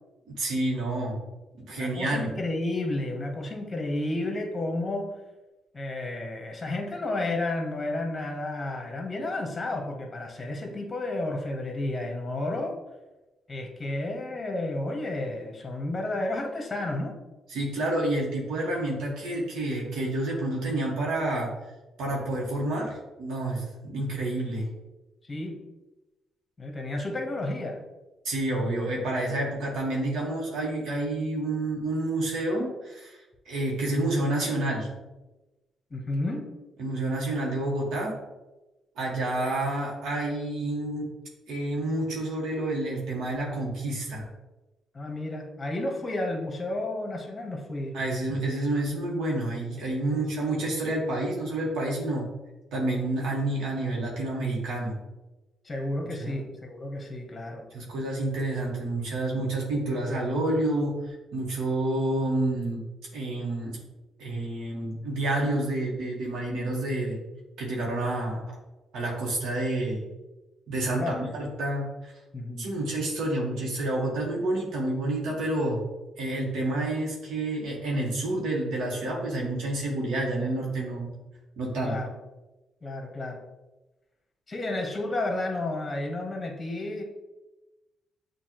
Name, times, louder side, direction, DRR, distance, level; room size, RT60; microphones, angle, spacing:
voice 1, 0.3-1.1 1.6-2.3 17.5-21.5 22.0-22.9 23.2-24.7 28.2-34.9 36.8-38.1 39.0-41.1 41.5-44.2 47.9-52.3 52.7-54.9 55.9-56.3 57.7-62.8 63.1-63.8 64.2-67.2 67.6-68.4 68.9-70.0 70.7-72.1 72.6-75.8 76.2-81.1 81.6-81.9, right 1 dB, 80° right, -3 dB, 1.2 m, -29 dB
voice 2, 1.7-5.1 5.7-12.7 13.5-17.1 25.3-25.6 26.6-27.8 35.9-36.5 44.9-47.9 50.1-50.2 55.6-57.6 70.9-71.3 72.3-72.7 81.8-82.1 82.8-83.4 84.5-87.0, left 2 dB, 25° left, 3 dB, 1.0 m, -31 dB
6.9 x 2.5 x 3.0 m, 1.1 s
cardioid pair, 90°, 0 cm